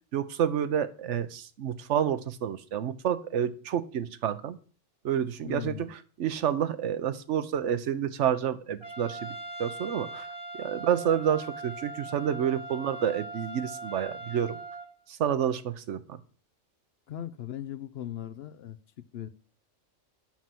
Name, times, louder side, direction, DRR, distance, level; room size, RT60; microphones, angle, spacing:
voice 1, 0.1-4.6 5.0-10.3 10.5-14.6 15.1-16.2, right 9 dB, 75° right, 13 dB, 1.0 m, -29 dB
voice 2, 5.4-5.9 17.1-18.8 19.1-19.3, left 11 dB, 65° left, 14 dB, 0.8 m, -38 dB
Trumpet, 8.8-14.9, right 2 dB, 45° left, 2.1 m, -40 dB
7.4 x 5.6 x 7.6 m, 0.42 s
omnidirectional pair, 1.3 m